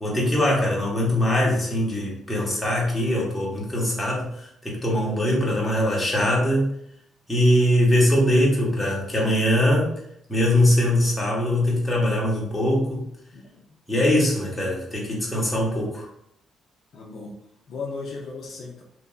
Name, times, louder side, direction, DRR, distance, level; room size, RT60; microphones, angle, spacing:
voice 1, 0.0-6.7 7.3-9.9 10.3-13.0 13.9-16.0, left 1 dB, 15° left, -4 dB, 1.1 m, -22 dB
voice 2, 5.0-5.8 13.3-13.6 16.9-17.3 17.7-18.8, left 4 dB, 65° left, -1 dB, 0.5 m, -36 dB
2.9 x 2.6 x 2.3 m, 0.73 s
cardioid pair, 90°, 0 cm